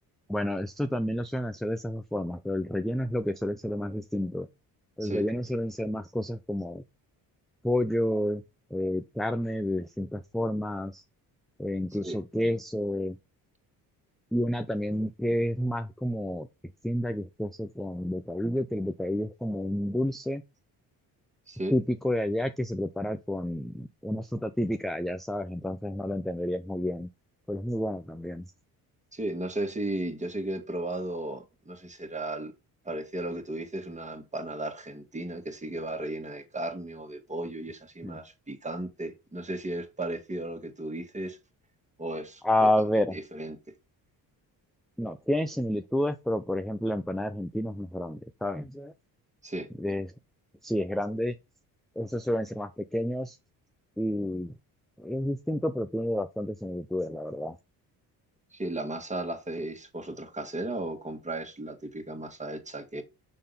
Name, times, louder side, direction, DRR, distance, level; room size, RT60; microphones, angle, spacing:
voice 1, 0.3-4.5 5.0-6.8 7.6-8.4 8.7-11.0 11.6-13.2 14.3-16.5 16.8-20.4 21.7-27.1 27.5-28.4 38.0-38.2 42.4-43.1 45.0-48.9 49.8-50.1 50.6-51.3 52.0-53.4 54.0-54.5 55.0-57.6, left 1 dB, ahead, 0.4 m, -30 dB
voice 2, 29.1-32.5 32.8-41.4 42.0-42.7 43.1-43.6 49.4-49.7 58.5-63.0, right 1 dB, 15° right, 1.8 m, -35 dB
6.8 x 3.7 x 5.5 m
supercardioid pair, 75°, 40 cm